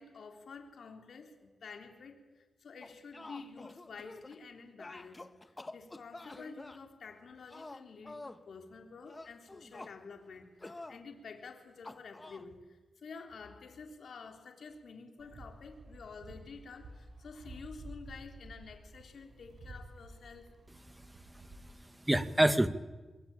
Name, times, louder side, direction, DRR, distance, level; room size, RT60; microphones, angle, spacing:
voice 1, 0.0-20.5, left 4 dB, 70° left, 4 dB, 3.8 m, -50 dB
sound 1, 2.8-4.4 4.8-6.8 7.5-8.4 9.0-9.9 10.6-11.0 11.8-12.4, left 2 dB, 30° left, 1.7 m, -48 dB
sound 2, 15.2-21.7, right 1 dB, 65° right, 6.9 m, -52 dB
voice 2, 21.3-22.7, right 1 dB, 15° right, 11 dB, 1.8 m, -29 dB
23.0 x 23.0 x 8.8 m, 1.3 s
cardioid pair, 50°, 0 cm